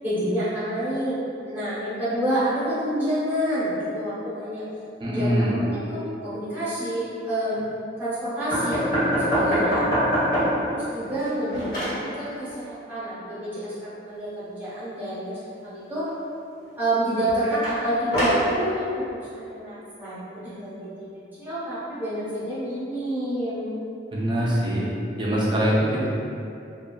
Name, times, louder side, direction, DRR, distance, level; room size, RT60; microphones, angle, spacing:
voice 1, 0.0-1.2 1.5-4.6 5.0-7.6 8.0-9.9 10.7-16.1 16.8-21.1 21.4-23.7, right 1 dB, 10° right, -13 dB, 0.9 m, -28 dB
voice 2, 5.0-5.6 24.1-24.8 25.2-26.1, equal, 25° right, -6 dB, 0.5 m, -23 dB
sound 1, 8.5-10.7 11.1-12.0 17.6-18.5, equal, 55° left, 1.0 m, -23 dB
2.7 x 2.3 x 2.2 m, 2.6 s
head